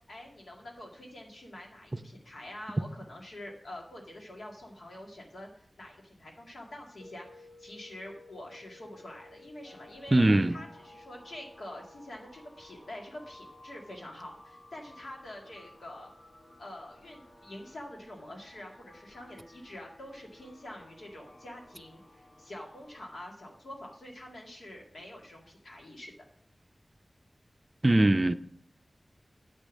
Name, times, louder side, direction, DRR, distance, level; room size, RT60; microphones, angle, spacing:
voice 1, 0.1-10.1 10.5-16.1 16.6-26.1, left 1 dB, 85° left, 2.1 m, -46 dB
sound 1, 7.0-21.9, left 2 dB, 50° left, 2.7 m, -59 dB
sound 2, 9.6-23.1, left 1 dB, 65° left, 2.6 m, -56 dB
voice 2, 10.1-10.6 27.8-28.3, right 1 dB, 35° right, 0.5 m, -21 dB
8.2 x 5.3 x 7.3 m
wide cardioid pair, 75°, 0 cm